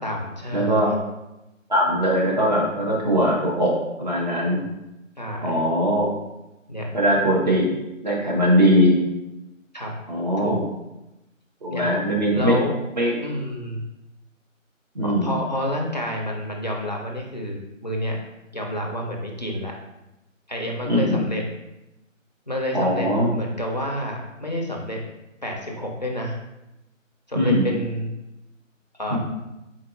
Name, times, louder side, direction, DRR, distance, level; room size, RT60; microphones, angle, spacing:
voice 1, 0.0-0.9 5.2-5.6 6.7-6.9 9.7-9.9 10.4-10.6 11.7-12.7 13.2-13.8 15.0-18.2 18.5-19.7 20.5-21.4 22.5-25.0 25.4-26.4 27.3-28.1 29.0-29.2, left 1 dB, 35° left, -1 dB, 0.5 m, -29 dB
voice 2, 0.5-0.9 1.7-3.7 4.0-4.6 5.4-6.1 6.9-7.7 8.0-9.0 10.1-10.6 11.6-12.5 13.0-13.1 14.9-15.3 20.8-21.2 22.7-23.3 27.3-27.7 29.1-29.2, equal, 35° right, -4 dB, 1.0 m, -20 dB
4.5 x 3.8 x 2.5 m, 0.95 s
figure-of-eight pair, 160°, 40 cm